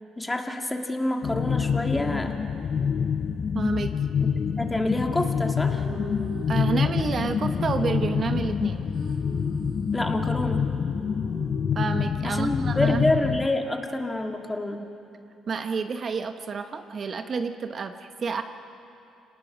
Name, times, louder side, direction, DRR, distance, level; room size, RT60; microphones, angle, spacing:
voice 1, 0.2-2.3 4.2-4.3 4.6-5.9 9.9-10.7 12.2-14.9, left 1 dB, 15° left, 3 dB, 2.0 m, -27 dB
sound 1, 1.2-13.5, left 7 dB, 50° left, 0.5 m, -26 dB
voice 2, 3.5-3.9 6.5-8.9 11.7-13.0 15.5-18.4, right 5 dB, 45° right, 7 dB, 0.9 m, -29 dB
sound 2, 5.3-12.4, right 3 dB, 65° right, 4.2 m, -43 dB
26.5 x 19.0 x 6.2 m, 2.7 s
cardioid pair, 80°, 0 cm